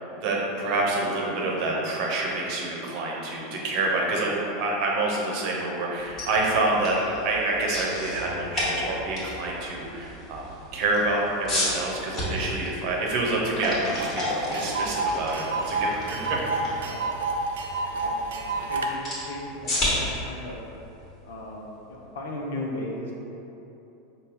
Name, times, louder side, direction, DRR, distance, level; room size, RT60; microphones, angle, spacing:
voice 1, 0.1-10.4 10.7-14.2 14.5-16.7, right 2 dB, 50° right, -2 dB, 0.8 m, -27 dB
sound 1, 6.0-21.9, left 1 dB, 35° left, 1.4 m, -33 dB
Tick, 14.0-14.1 14.4-18.9, right 3 dB, 65° right, 0.4 m, -29 dB
voice 2, 16.8-17.2 17.8-20.6 21.2-23.1, left 1 dB, 65° left, -1 dB, 0.6 m, -37 dB
5.2 x 2.2 x 4.0 m, 3.0 s
figure-of-eight pair, 85°, 0 cm